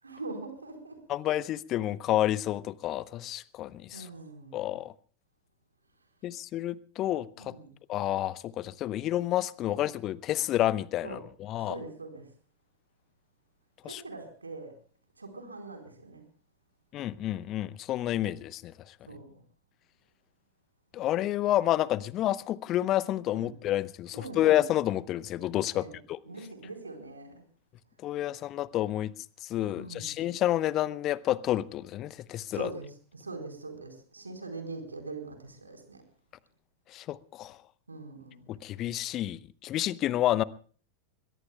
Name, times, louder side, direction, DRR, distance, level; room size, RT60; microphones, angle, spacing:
voice 1, 0.0-1.0 3.9-4.8 7.4-7.8 9.7-9.9 11.0-11.2 11.6-12.3 13.8-14.8 15.2-16.2 19.1-19.4 23.3-23.5 24.1-24.5 25.7-27.4 29.7-30.2 32.5-36.0 37.9-38.5, right 3 dB, 80° right, 4.2 m, -43 dB
voice 2, 1.1-4.1 4.5-4.9 6.2-7.5 7.9-11.7 13.8-14.0 16.9-18.9 20.9-26.2 28.0-29.1 29.4-32.7 36.9-37.6 38.5-40.4, left 13 dB, 35° left, 0.8 m, -29 dB
22.5 x 21.5 x 2.2 m
figure-of-eight pair, 90°, 0 cm